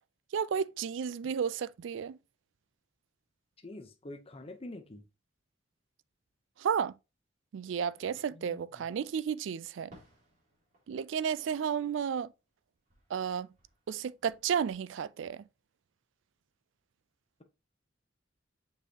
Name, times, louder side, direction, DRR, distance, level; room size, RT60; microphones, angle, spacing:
voice 1, 0.3-2.2 6.6-6.9 7.5-9.9 10.9-12.3 13.1-13.5 13.9-15.4, right 7 dB, 70° right, 0.3 m, -32 dB
voice 2, 3.6-5.0 8.3-8.8, left 1 dB, 30° left, 0.7 m, -46 dB
Fireworks, 9.9-12.5 12.9-14.8, equal, 45° right, 3.7 m, -62 dB
6.5 x 5.3 x 2.8 m
head